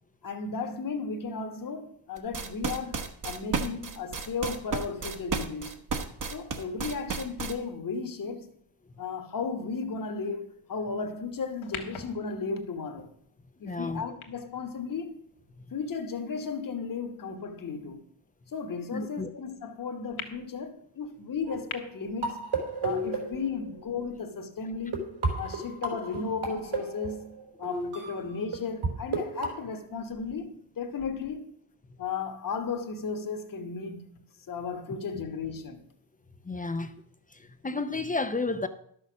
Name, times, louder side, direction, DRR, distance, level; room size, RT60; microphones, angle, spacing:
voice 1, 0.2-5.8 6.3-8.5 9.0-13.1 13.6-15.2 15.7-18.0 18.5-22.5 22.8-31.5 32.0-35.8, left 5 dB, 40° left, 1.3 m, -35 dB
sound 1, 2.2-7.5, right 5 dB, 40° right, 1.1 m, -32 dB
sound 2, 11.6-16.1 16.7-16.8 20.2-20.3 21.7-21.8, left 7 dB, 80° left, 1.7 m, -44 dB
voice 2, 13.6-14.0 15.6-15.7 18.9-19.3 36.5-36.9 37.6-38.7, left 3 dB, 20° left, 0.5 m, -31 dB
sound 3, 21.5-24.0 24.6-24.7 24.9-28.9 29.1-29.5, right 3 dB, 80° right, 3.9 m, -33 dB
12.0 x 6.4 x 6.2 m
wide cardioid pair, 160°, 48 cm